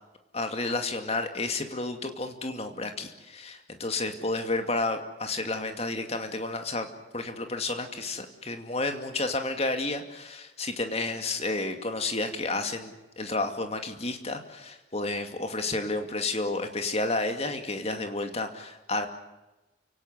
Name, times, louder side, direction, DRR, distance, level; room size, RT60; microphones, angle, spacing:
voice 1, 0.3-6.9 7.1-19.1, left 2 dB, 35° left, 6 dB, 2.5 m, -31 dB
29.5 x 17.5 x 8.1 m, 1.1 s
head